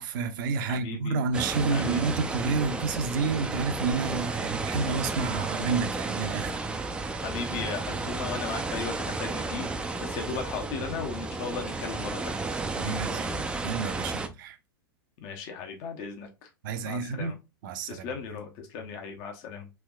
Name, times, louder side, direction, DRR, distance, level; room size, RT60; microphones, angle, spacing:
voice 1, 0.0-6.6 12.8-14.6 16.6-17.4 17.6-18.1, right 4 dB, 55° right, 0.5 m, -30 dB
voice 2, 0.7-1.2 1.7-2.1 7.2-12.4 15.2-16.5 16.8-17.3 17.9-19.7, left 5 dB, 45° left, 0.7 m, -36 dB
sound 1, 1.3-14.3, right 3 dB, 10° right, 0.3 m, -32 dB
3.4 x 2.9 x 2.2 m
hypercardioid pair, 100°, 12 cm